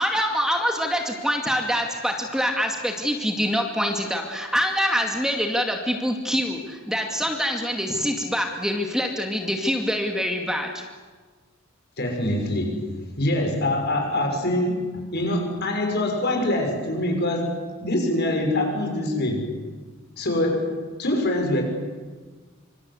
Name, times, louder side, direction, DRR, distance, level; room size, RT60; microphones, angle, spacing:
voice 1, 0.0-10.9, equal, 5° right, 2 dB, 2.3 m, -25 dB
voice 2, 12.0-19.5 20.2-21.6, left 1 dB, 55° left, 3 dB, 6.4 m, -24 dB
26.0 x 25.5 x 8.4 m, 1.4 s
head